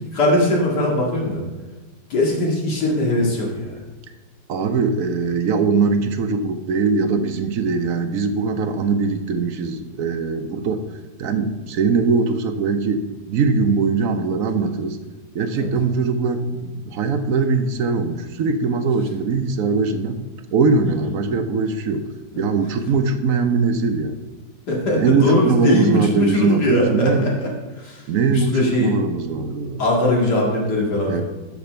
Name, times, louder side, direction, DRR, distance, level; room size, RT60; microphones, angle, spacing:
voice 1, 0.1-1.4 2.1-3.8 15.5-15.7 22.3-22.5 24.7-27.5 27.8-28.0 28.3-28.9 29.8-31.2, left 1 dB, 60° left, -2 dB, 2.6 m, -20 dB
voice 2, 4.5-10.8 11.2-15.0 15.3-20.2 20.5-22.1 22.4-24.2 25.0-27.3 28.1-29.8 31.0-31.2, right 4 dB, 60° right, 7 dB, 1.0 m, -21 dB
12.0 x 5.9 x 4.4 m, 1.2 s
omnidirectional pair, 2.0 m